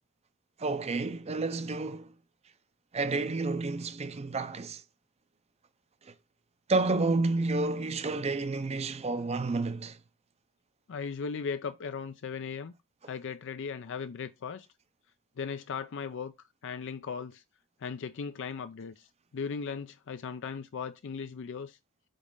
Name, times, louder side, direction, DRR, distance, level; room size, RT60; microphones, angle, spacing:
voice 1, 0.6-2.1 2.9-4.8 6.0-6.1 6.7-10.0, right 3 dB, 30° right, 0.5 m, -30 dB
voice 2, 10.9-12.7 13.1-14.7 15.4-16.3 16.6-17.4 17.8-19.1 19.3-21.8, left 6 dB, 60° left, 0.4 m, -37 dB
5.2 x 4.1 x 5.2 m
head